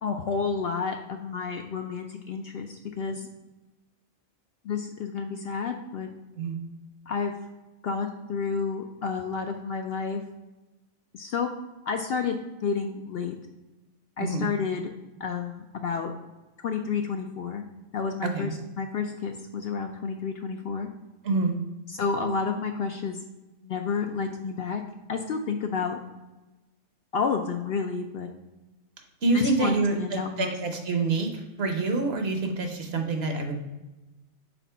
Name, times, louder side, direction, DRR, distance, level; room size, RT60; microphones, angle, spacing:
voice 1, 0.0-3.3 4.6-6.1 7.1-7.3 7.8-10.2 11.1-11.5 11.9-13.3 14.2-14.9 15.2-16.1 16.6-17.6 17.9-20.9 21.9-23.2 23.6-24.8 25.1-26.0 27.1-28.3 29.3-30.5, left 5 dB, 65° left, 4 dB, 0.6 m, -30 dB
voice 2, 18.2-18.5 21.2-21.6 29.2-31.3 31.6-33.5, right 3 dB, 55° right, 4 dB, 1.0 m, -26 dB
4.2 x 4.0 x 5.5 m, 1.1 s
omnidirectional pair, 1.3 m